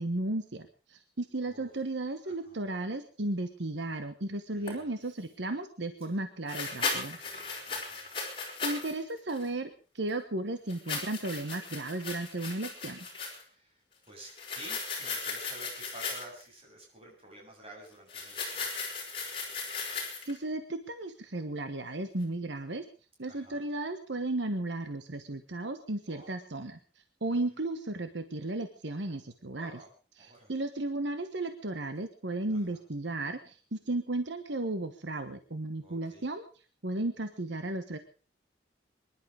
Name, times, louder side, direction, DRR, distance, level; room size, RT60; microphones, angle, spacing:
voice 1, 0.0-7.2 8.6-9.7 9.9-13.0 20.2-22.9 23.2-26.8 27.2-29.7 30.2-36.4 36.8-38.0, right 2 dB, 70° right, 9 dB, 1.2 m, -34 dB
voice 2, 2.2-2.6 4.5-5.1 6.0-6.2 6.5-8.1 13.4-18.7 23.3-23.6 26.0-26.3 29.5-29.9 30.2-30.5 32.5-32.8 35.8-36.3, right 1 dB, 30° right, -1 dB, 7.7 m, -51 dB
sound 1, 4.7-4.8 6.5-8.9 9.3-9.5 10.7-13.4 14.3-16.4 18.1-20.4, left 4 dB, 30° left, 5.4 m, -36 dB
24.5 x 11.5 x 5.0 m, 0.38 s
head